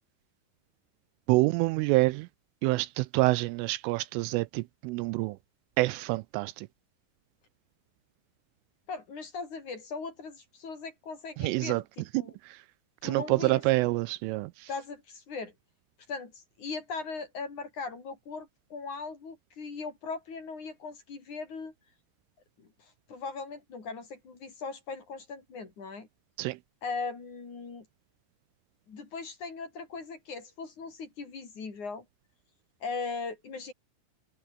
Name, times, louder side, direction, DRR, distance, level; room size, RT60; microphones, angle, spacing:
voice 1, 1.3-2.3 2.6-5.4 5.8-6.7 11.4-11.8 12.1-12.6 13.0-14.7 26.4-26.6, right 21 dB, 85° right, 3.0 m, -27 dB
voice 2, 8.9-12.4 13.0-13.6 14.7-15.5 16.1-21.7 22.6-26.1 26.8-27.9 28.9-32.1 32.8-33.7, left 4 dB, 40° left, 5.3 m, -39 dB
omnidirectional pair, 5.9 m